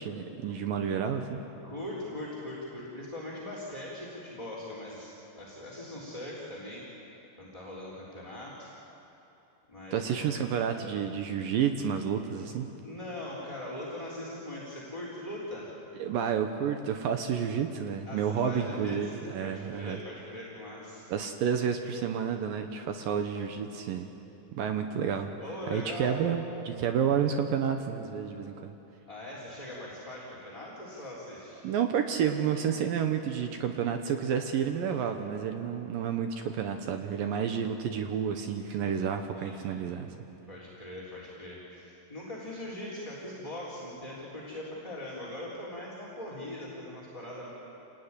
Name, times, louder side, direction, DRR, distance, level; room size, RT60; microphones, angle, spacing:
voice 1, 0.0-1.4 9.9-12.7 16.0-20.0 21.1-24.1 24.5-25.3 25.7-28.7 31.6-40.1, right 7 dB, 70° right, 6 dB, 2.2 m, -30 dB
voice 2, 1.6-6.8 7.4-8.7 9.7-10.2 12.8-15.8 18.0-21.0 25.4-26.2 29.1-31.6 39.3-39.6 40.5-47.5, left 1 dB, 10° left, -6 dB, 2.9 m, -41 dB
27.0 x 19.0 x 9.8 m, 3.0 s
omnidirectional pair, 5.2 m